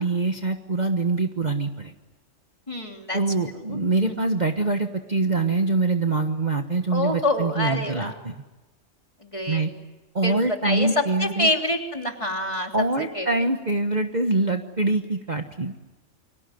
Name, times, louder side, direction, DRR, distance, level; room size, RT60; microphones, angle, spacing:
voice 1, 0.0-1.9 3.1-8.3 9.5-9.7 10.1-11.5 12.7-15.7, right 3 dB, 35° right, 6 dB, 1.4 m, -24 dB
voice 2, 2.7-3.2 3.5-3.8 4.0-4.3 6.9-8.1 9.3-9.7 10.2-12.7 13.0-13.3, left 1 dB, 25° left, 3 dB, 3.3 m, -27 dB
29.5 x 24.5 x 7.9 m, 1.1 s
omnidirectional pair, 1.3 m